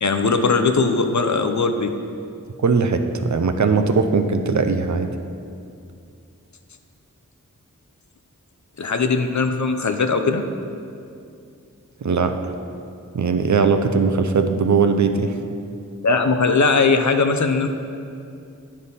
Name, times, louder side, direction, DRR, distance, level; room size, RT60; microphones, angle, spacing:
voice 1, 0.0-1.9 8.8-10.4 16.0-17.7, left 4 dB, 60° left, 7 dB, 0.6 m, -19 dB
voice 2, 2.6-5.1 12.0-12.4 13.1-15.4, right 5 dB, 60° right, 7 dB, 0.5 m, -19 dB
9.4 x 5.3 x 4.1 m, 2.5 s
wide cardioid pair, 40°, 32 cm